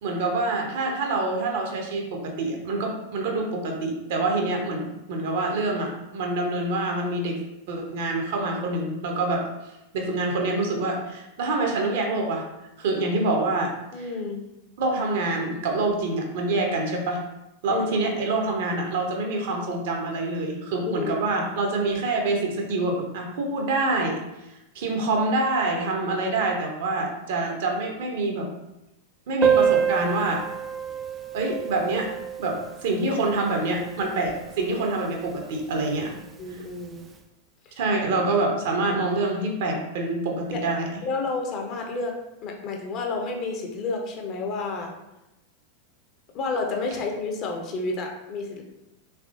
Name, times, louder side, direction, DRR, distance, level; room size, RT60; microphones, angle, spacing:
voice 1, 0.0-7.4 7.7-9.4 9.9-12.4 12.8-13.7 14.0-14.1 14.8-17.2 17.6-24.2 24.7-28.5 29.3-30.4 31.3-32.1 32.4-36.1 36.5-36.6 37.8-40.9, right 2 dB, 55° right, 1 dB, 0.7 m, -26 dB
voice 2, 13.9-14.4 17.7-18.1 20.9-21.3 36.4-37.1 37.6-37.8 40.5-40.6 41.0-44.9 46.3-48.6, left 3 dB, 35° left, 2 dB, 0.6 m, -30 dB
Piano, 29.4-34.8 35.0-35.1 35.3-35.5 35.8-35.9 36.7-36.9, right 8 dB, 20° right, 0.3 m, -27 dB
3.4 x 3.2 x 2.4 m, 0.93 s
figure-of-eight pair, 90°, 0 cm